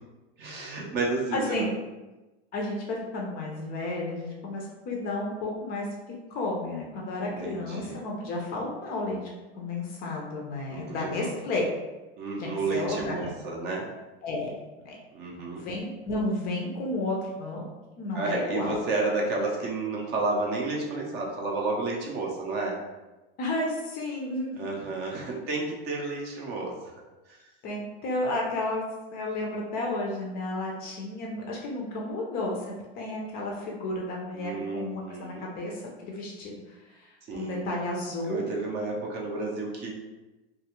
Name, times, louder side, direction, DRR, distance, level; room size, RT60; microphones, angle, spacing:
voice 1, 0.4-1.7 7.2-8.0 10.7-11.3 12.2-13.9 15.1-15.6 18.1-22.8 24.6-26.7 27.3-27.4 34.3-35.4 37.3-37.6 38.2-39.9, right 3 dB, 30° right, -1 dB, 0.5 m, -31 dB
voice 2, 1.3-1.7 2.5-5.9 6.3-9.2 9.6-11.7 12.4-13.3 14.2-14.5 14.8-15.0 15.4-17.7 18.0-18.8 23.4-24.7 27.6-28.8 29.1-36.6 36.8-38.5, left 2 dB, 30° left, -1 dB, 0.4 m, -32 dB
2.4 x 2.3 x 2.9 m, 1.1 s
supercardioid pair, 140°, 33 cm